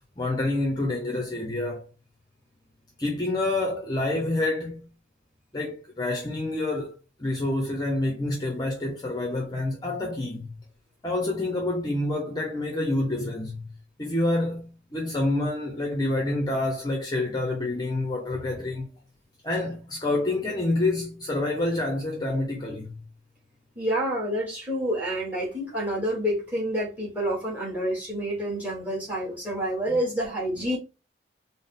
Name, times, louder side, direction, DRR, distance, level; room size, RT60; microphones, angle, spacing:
voice 1, 0.2-1.9 3.0-4.9 5.5-6.9 7.2-10.5 11.0-13.7 14.0-18.9 19.4-23.0, left 2 dB, 20° left, 0.5 m, -27 dB
voice 2, 23.7-30.8, equal, 10° right, 1.5 m, -28 dB
3.6 x 2.0 x 3.7 m
head